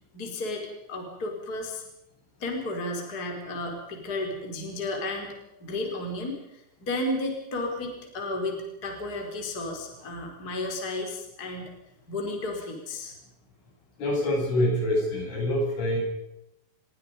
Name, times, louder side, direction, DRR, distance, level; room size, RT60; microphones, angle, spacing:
voice 1, 0.1-1.8 2.4-6.3 6.8-11.7 12.1-13.1, left 2 dB, 20° left, 2 dB, 4.6 m, -33 dB
voice 2, 14.0-16.0, left 1 dB, 70° left, 0 dB, 10.5 m, -25 dB
27.5 x 23.0 x 5.4 m, 0.86 s
omnidirectional pair, 5.9 m